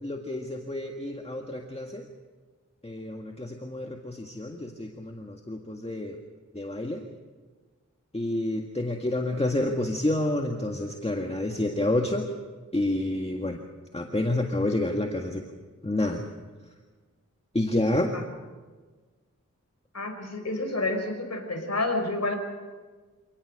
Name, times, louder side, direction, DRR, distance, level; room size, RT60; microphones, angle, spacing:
voice 1, 0.0-2.0 2.8-6.2 6.5-7.0 8.1-12.3 12.7-13.6 13.9-15.4 15.8-16.2 17.5-18.1, left 1 dB, 20° left, 3 dB, 1.9 m, -29 dB
voice 2, 19.9-22.3, left 2 dB, 55° left, 4 dB, 5.0 m, -29 dB
28.0 x 18.5 x 6.7 m, 1.4 s
wide cardioid pair, 65°, 31 cm